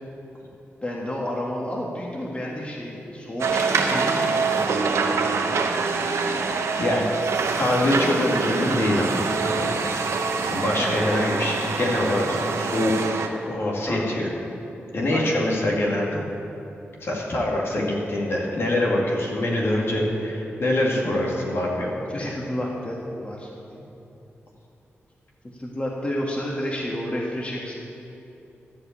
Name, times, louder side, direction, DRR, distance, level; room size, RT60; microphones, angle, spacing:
voice 1, 0.8-5.4 10.8-11.1 13.9-14.1 15.1-15.3 22.1-23.9 25.6-27.7, left 1 dB, 25° left, -3 dB, 1.6 m, -31 dB
sound 1, 3.4-13.3, right 4 dB, 85° right, 0.8 m, -25 dB
voice 2, 6.8-7.1 7.6-10.1 10.4-13.2 13.5-14.3 14.9-16.2 17.0-22.3, left 1 dB, 60° left, -2 dB, 2.2 m, -24 dB
12.5 x 5.2 x 8.7 m, 2.9 s
wide cardioid pair, 85°, 5 cm